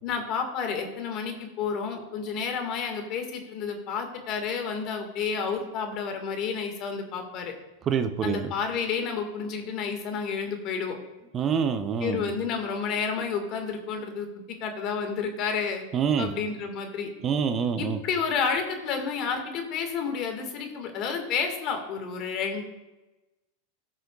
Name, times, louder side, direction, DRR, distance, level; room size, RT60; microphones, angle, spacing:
voice 1, 0.0-7.5 8.2-11.0 12.0-14.3 14.6-15.8 16.2-17.1 17.8-22.6, left 6 dB, 45° left, 5 dB, 1.8 m, -30 dB
voice 2, 7.9-8.5 11.3-12.3 15.9-16.3 17.2-18.0, right 7 dB, 30° right, 8 dB, 0.7 m, -26 dB
18.0 x 6.6 x 2.4 m, 1.1 s
hypercardioid pair, 125°, 0 cm